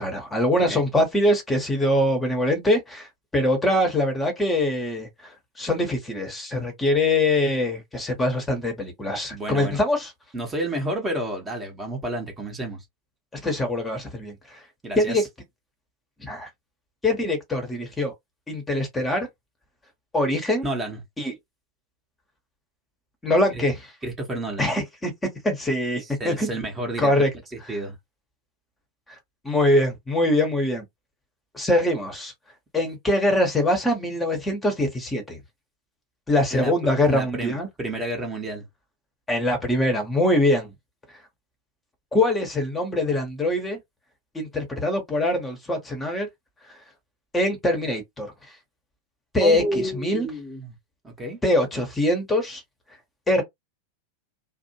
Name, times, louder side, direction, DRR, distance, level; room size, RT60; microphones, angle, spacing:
voice 1, 0.0-3.1 3.3-5.3 5.6-10.1 13.4-14.3 15.0-15.2 16.2-16.5 17.0-18.1 18.5-19.3 20.1-20.6 21.2-21.3 23.2-23.8 24.6-25.1 25.4-26.5 27.0-27.3 29.4-30.8 31.5-32.3 32.7-35.4 36.3-37.7 39.3-40.7 42.1-43.8 44.3-46.3 47.3-48.3 49.3-50.3 51.4-52.6 53.3-53.4, left 1 dB, 10° left, 0.9 m, -23 dB
voice 2, 9.3-9.8 10.3-12.8 14.8-15.3 20.6-21.0 23.5-23.7 24.0-24.7 26.0-28.0 36.5-36.7 37.0-38.6 49.4-50.7 51.0-51.4, right 1 dB, 15° right, 0.9 m, -30 dB
2.5 x 2.0 x 2.8 m
figure-of-eight pair, 90°, 0 cm